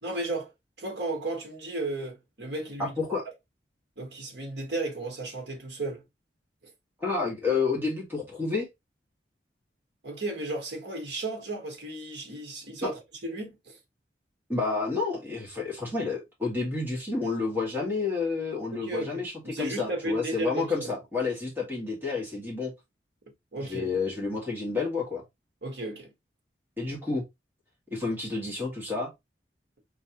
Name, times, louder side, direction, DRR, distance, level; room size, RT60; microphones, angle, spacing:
voice 1, 0.0-0.5 0.8-3.0 4.0-6.0 10.0-13.8 18.7-20.9 23.5-23.9 25.6-26.1, right 2 dB, 70° right, 1.5 m, -34 dB
voice 2, 2.8-3.2 7.0-8.7 12.8-12.9 14.5-22.7 23.6-25.2 26.8-27.2 27.9-29.1, left 4 dB, 10° right, 2.0 m, -30 dB
4.5 x 3.3 x 3.0 m
head